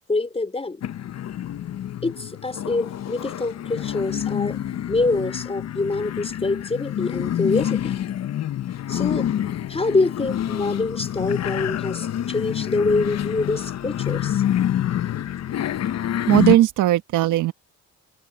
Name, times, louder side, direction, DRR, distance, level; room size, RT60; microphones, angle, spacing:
voice 1, 0.1-0.8 2.0-4.6 4.9-7.9 8.9-9.3 9.7-14.4, left 3 dB, 20° left, 4.2 m, -25 dB
sound 1, 0.8-16.6, left 11 dB, 60° left, 0.9 m, -27 dB
voice 2, 16.3-17.5, right 14 dB, 85° right, 1.3 m, -17 dB
cardioid pair, 90°, 30 cm